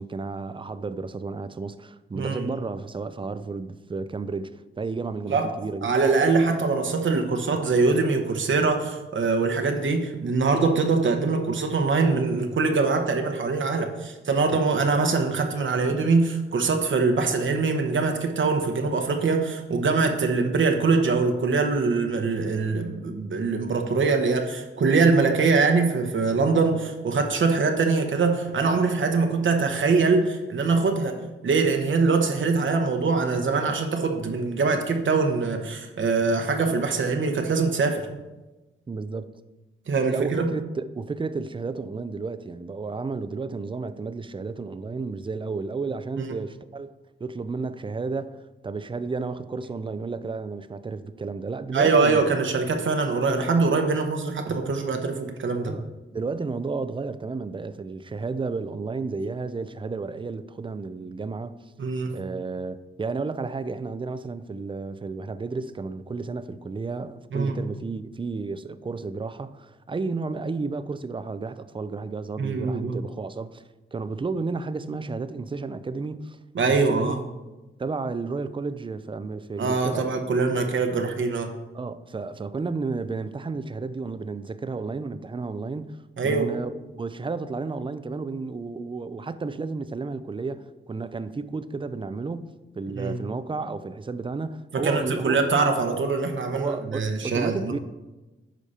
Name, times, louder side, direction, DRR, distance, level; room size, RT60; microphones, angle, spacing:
voice 1, 0.0-5.9 14.5-14.6 38.9-39.4 40.1-46.9 47.2-52.2 53.8-54.0 55.6-61.6 62.1-73.6 73.9-76.4 76.6-77.1 77.8-80.1 81.7-86.0 86.2-92.5 92.8-95.4 96.5-97.8, right 4 dB, 25° right, 0.4 m, -32 dB
voice 2, 2.1-2.5 5.3-5.5 5.8-31.2 31.4-38.1 39.9-40.5 46.2-46.3 51.7-55.8 61.8-62.1 67.3-67.5 72.4-73.0 76.5-77.2 79.6-81.5 86.2-86.5 93.0-93.2 94.7-97.6, right 4 dB, 65° right, 1.0 m, -23 dB
10.0 x 5.2 x 4.2 m
wide cardioid pair, 100°, 21 cm